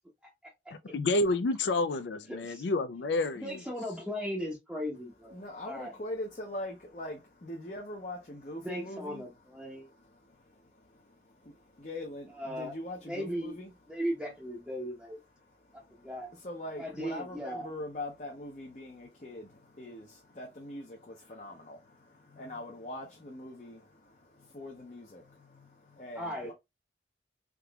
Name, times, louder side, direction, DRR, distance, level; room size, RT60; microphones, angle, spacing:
voice 1, 0.9-3.6, left 2 dB, 75° left, 0.4 m, -29 dB
voice 2, 2.3-2.6 3.4-5.9 8.6-9.9 12.4-12.7 13.1-13.6 13.9-15.2 15.9-16.3 16.8-17.7 26.2-26.5, equal, 5° right, 0.7 m, -37 dB
voice 3, 5.3-9.3 9.6-13.7 15.4-26.5, left 1 dB, 40° left, 0.7 m, -43 dB
3.6 x 2.9 x 2.3 m
head